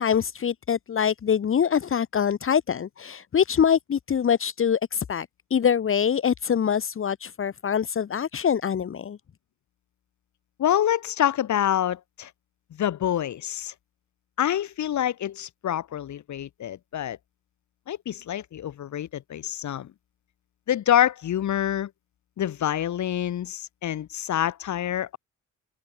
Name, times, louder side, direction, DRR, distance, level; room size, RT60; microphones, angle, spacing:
voice 1, 0.0-9.2, left 8 dB, 45° left, 1.7 m, -24 dB
voice 2, 10.6-12.3 12.7-13.7 14.4-17.2 17.9-19.9 20.7-21.9 22.4-25.2, left 11 dB, 70° left, 7.7 m, -26 dB
cardioid pair, 90°, 30 cm